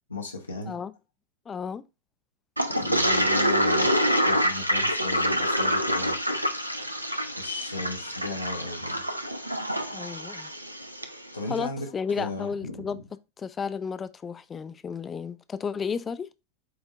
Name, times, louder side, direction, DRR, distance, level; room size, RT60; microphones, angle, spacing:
voice 1, 0.1-0.8 2.7-6.2 7.4-9.0 11.3-13.0, left 2 dB, 80° left, 0.7 m, -36 dB
voice 2, 1.5-1.8 9.9-10.5 11.5-13.0 13.4-16.3, left 6 dB, 20° left, 0.3 m, -33 dB
Toilet flush, 2.6-11.1, equal, 90° right, 0.5 m, -26 dB
7.7 x 2.6 x 2.4 m
figure-of-eight pair, 90°, 0 cm